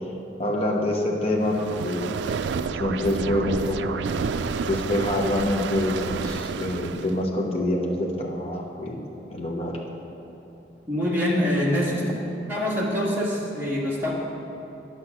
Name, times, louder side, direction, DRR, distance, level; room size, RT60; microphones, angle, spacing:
voice 1, 0.4-2.1 2.7-4.2 4.7-9.0 9.3-9.7, left 1 dB, 35° left, -1 dB, 1.1 m, -26 dB
sound 1, 1.4-7.2, right 5 dB, 75° right, 0.3 m, -30 dB
voice 2, 10.9-12.1 12.5-14.1, left 1 dB, 15° right, -6 dB, 1.9 m, -24 dB
9.9 x 7.5 x 6.0 m, 3.0 s
head